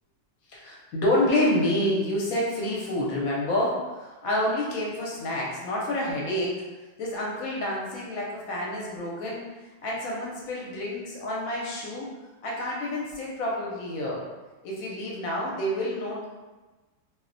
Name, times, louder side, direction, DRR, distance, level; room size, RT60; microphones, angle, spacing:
voice 1, 0.5-6.6 7.0-9.4 9.8-12.1 12.4-14.2 14.6-16.2, left 1 dB, 70° left, -4 dB, 1.0 m, -28 dB
2.5 x 2.1 x 2.5 m, 1.2 s
omnidirectional pair, 1.6 m